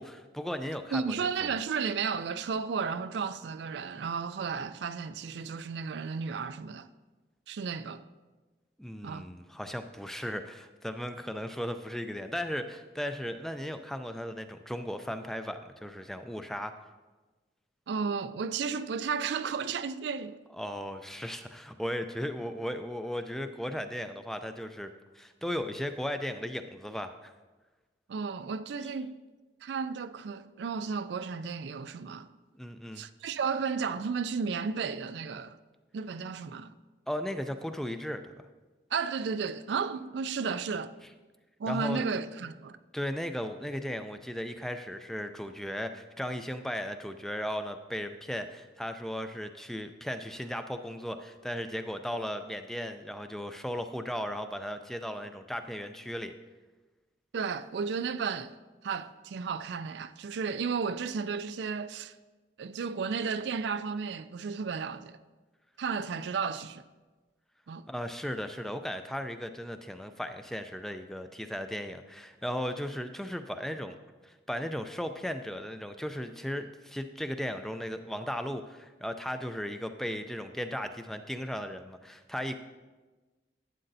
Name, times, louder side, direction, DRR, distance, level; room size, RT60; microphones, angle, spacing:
voice 1, 0.0-1.5 8.8-16.7 20.6-24.9 25.1-27.3 32.6-33.0 37.1-38.3 41.7-42.1 42.9-56.3 67.9-73.9 74.2-82.5, equal, ahead, 0.3 m, -36 dB
voice 2, 0.9-6.9 7.5-8.0 9.0-9.3 17.9-20.4 28.1-29.1 29.6-32.3 33.0-35.6 35.9-36.7 38.9-40.9 41.6-42.8 57.3-58.5 58.8-62.1 62.6-65.2 65.8-66.8 67.7-67.9, right 5 dB, 75° right, 0.4 m, -33 dB
11.5 x 8.8 x 2.7 m
head